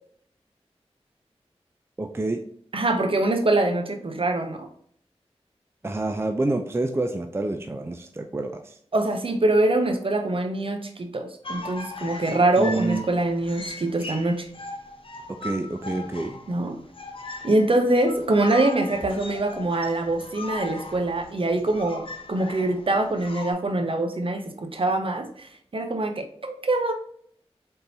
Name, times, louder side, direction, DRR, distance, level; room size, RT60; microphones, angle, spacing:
voice 1, 2.0-2.4 5.8-8.8 12.6-13.0 15.3-16.4, right 2 dB, 25° right, 6 dB, 0.4 m, -28 dB
voice 2, 2.7-4.7 8.9-14.5 16.5-16.8 17.4-26.9, right 2 dB, 55° right, 5 dB, 0.8 m, -24 dB
sound 1, 11.4-23.5, left 2 dB, 50° left, 0.7 m, -39 dB
4.0 x 3.7 x 2.8 m, 0.64 s
cardioid pair, 40°, 11 cm